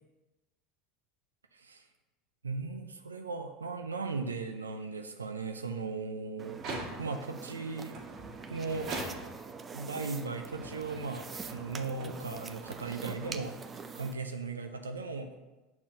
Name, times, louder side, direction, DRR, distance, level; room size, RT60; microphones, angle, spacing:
voice 1, 1.5-1.8 2.4-6.6 7.0-8.0 8.5-8.9 9.7-13.6 13.9-15.3, right 4 dB, 85° right, 6 dB, 0.5 m, -37 dB
sound 1, 6.4-14.1, right 5 dB, 25° right, 0.5 m, -45 dB
sound 2, 6.5-7.3 7.9-9.6 10.3-13.8, right 2 dB, 50° right, 1.5 m, -43 dB
5.7 x 4.5 x 6.1 m, 1.1 s
hypercardioid pair, 80°, 0 cm